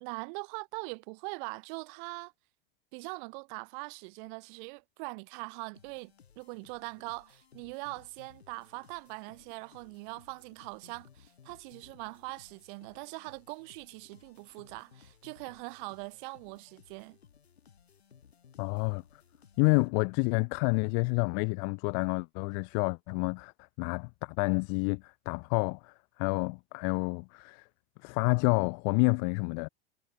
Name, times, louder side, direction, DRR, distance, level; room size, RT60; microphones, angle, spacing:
voice 1, 0.0-2.3 2.9-17.2, right 32 dB, 50° right, 1.2 m, -42 dB
sound 1, 5.8-20.3, left 7 dB, 80° left, 4.9 m, -60 dB
voice 2, 18.6-19.0 19.6-23.5 23.8-27.7 28.0-29.7, left 40 dB or more, 45° left, 0.7 m, -29 dB
hypercardioid pair, 90°, 31 cm